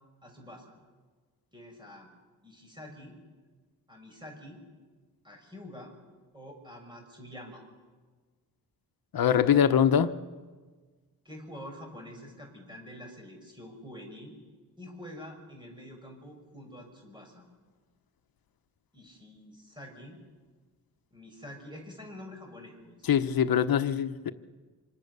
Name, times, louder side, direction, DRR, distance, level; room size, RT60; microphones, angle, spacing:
voice 1, 0.2-0.6 1.5-2.1 2.4-3.2 3.9-4.6 5.2-5.9 6.3-7.6 11.2-14.3 14.8-17.5 18.9-20.2 21.1-23.1, left 1 dB, 10° right, 6.1 m, -46 dB
voice 2, 9.1-10.1 23.1-24.3, left 8 dB, 70° left, 1.1 m, -23 dB
26.0 x 26.0 x 6.8 m
wide cardioid pair, 130°, 37 cm